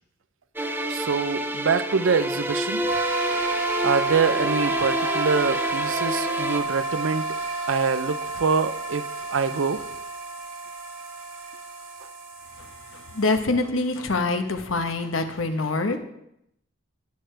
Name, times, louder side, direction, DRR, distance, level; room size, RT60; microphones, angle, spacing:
sound 1, 0.6-6.6, right 1 dB, 10° right, 0.6 m, -29 dB
voice 1, 0.9-2.8 3.8-7.3 7.7-9.8, right 5 dB, 75° right, 12 dB, 0.6 m, -25 dB
sound 2, 2.9-13.4, right 2 dB, 90° right, 1.7 m, -30 dB
voice 2, 12.9-16.0, left 3 dB, 90° left, 6 dB, 1.1 m, -25 dB
17.5 x 6.6 x 3.4 m, 0.77 s
head